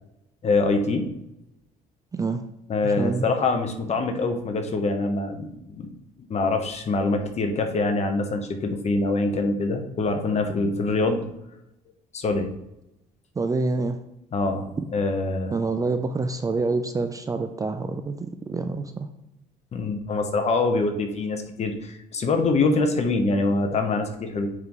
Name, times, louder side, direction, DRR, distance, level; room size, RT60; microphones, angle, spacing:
voice 1, 0.4-1.1 2.7-5.5 5.8-5.9 6.3-11.3 12.1-12.5 14.3-15.6 19.7-24.5, left 3 dB, 40° left, 5 dB, 1.0 m, -24 dB
voice 2, 2.1-2.4 2.8-3.3 13.4-14.0 14.8-14.9 15.5-19.1, right 3 dB, 20° right, 8 dB, 0.4 m, -27 dB
9.3 x 3.7 x 3.1 m, 0.86 s
cardioid pair, 110°, 17 cm